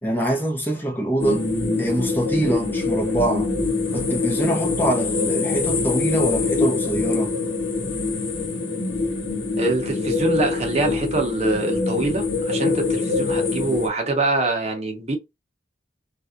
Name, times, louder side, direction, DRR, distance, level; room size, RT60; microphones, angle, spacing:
voice 1, 0.0-1.5 1.8-3.5 3.9-7.3, right 1 dB, 10° left, 0.9 m, -24 dB
sound 1, 1.2-13.9, left 3 dB, 70° left, 1.1 m, -24 dB
voice 2, 9.6-15.2, right 2 dB, 35° right, 1.0 m, -24 dB
3.4 x 2.6 x 2.5 m
head